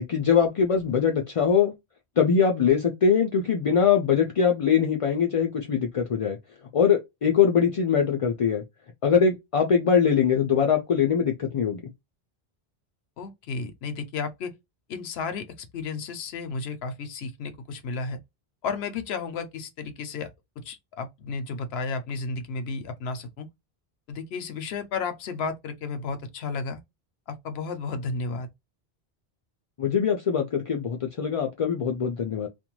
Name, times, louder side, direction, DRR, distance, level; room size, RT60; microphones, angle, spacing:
voice 1, 0.0-1.7 2.2-6.4 6.7-8.6 9.0-11.8 29.8-32.5, left 7 dB, 50° left, 0.4 m, -22 dB
voice 2, 13.2-14.5 14.9-18.2 18.6-23.5 24.1-26.8 27.3-28.5, left 4 dB, 85° left, 0.9 m, -33 dB
2.5 x 2.1 x 3.0 m
omnidirectional pair, 1.0 m